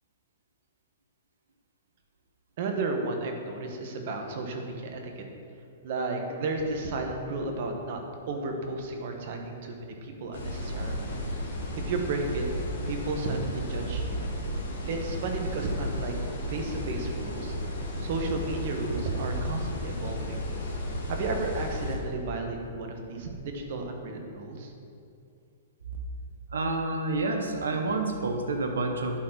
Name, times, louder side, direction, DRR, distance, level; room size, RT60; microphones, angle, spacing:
voice 1, 2.6-5.2 5.8-8.0 8.3-11.1 11.5-12.4 12.9-14.2 14.9-16.1 16.5-17.5 18.0-20.4 21.1-24.7, right 3 dB, 55° right, 3 dB, 1.3 m, -33 dB
sound 1, 10.3-22.0, equal, 85° left, 2.0 m, -34 dB
voice 2, 26.5-29.2, right 2 dB, 85° right, 4 dB, 0.9 m, -28 dB
11.0 x 4.4 x 4.4 m, 2.5 s
hypercardioid pair, 125°, 0 cm